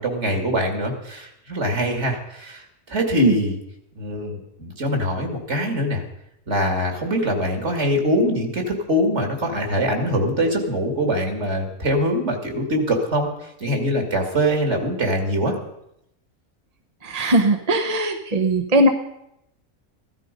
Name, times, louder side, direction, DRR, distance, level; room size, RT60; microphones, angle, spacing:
voice 1, 0.0-3.6 4.0-6.0 6.5-13.3 13.6-15.6, equal, 55° right, 4 dB, 2.8 m, -23 dB
voice 2, 17.1-18.9, right 1 dB, 30° right, 4 dB, 1.0 m, -19 dB
15.5 x 13.0 x 5.3 m, 0.81 s
omnidirectional pair, 1.4 m